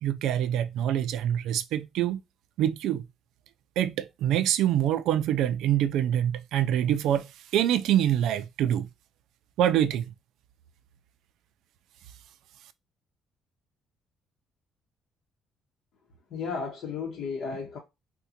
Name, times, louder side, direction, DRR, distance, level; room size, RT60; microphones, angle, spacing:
voice 1, 0.0-2.2 2.6-3.0 3.8-7.3 7.5-8.9 9.6-10.1, right 11 dB, 75° right, 0.3 m, -25 dB
voice 2, 16.3-17.8, left 5 dB, 55° left, 0.8 m, -33 dB
3.6 x 2.1 x 2.8 m
cardioid pair, 150°, 0 cm